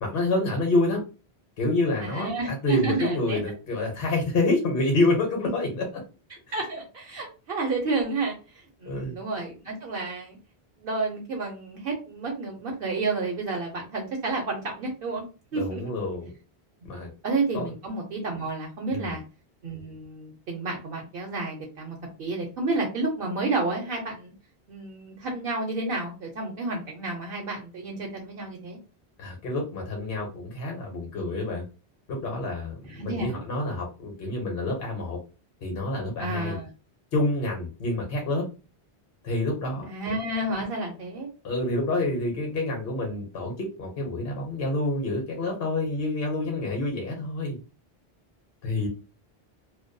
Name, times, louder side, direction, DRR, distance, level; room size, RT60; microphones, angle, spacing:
voice 1, 0.0-1.0 1.6-6.0 6.3-6.6 8.8-9.2 15.5-16.3 16.8-17.1 17.5-17.7 18.9-19.2 29.2-31.6 32.1-35.2 35.6-36.6 37.1-38.4 39.2-39.9 41.4-47.6 48.6-48.9, left 2 dB, 65° left, 1 dB, 0.8 m, -28 dB
voice 2, 2.0-3.4 6.5-10.4 10.8-15.2 15.5-15.8 17.2-19.2 19.6-24.3 24.7-28.8 32.9-33.4 36.2-36.7 39.9-41.3, right 3 dB, 70° right, 0 dB, 0.8 m, -30 dB
2.3 x 2.2 x 2.5 m, 0.32 s
omnidirectional pair, 1.1 m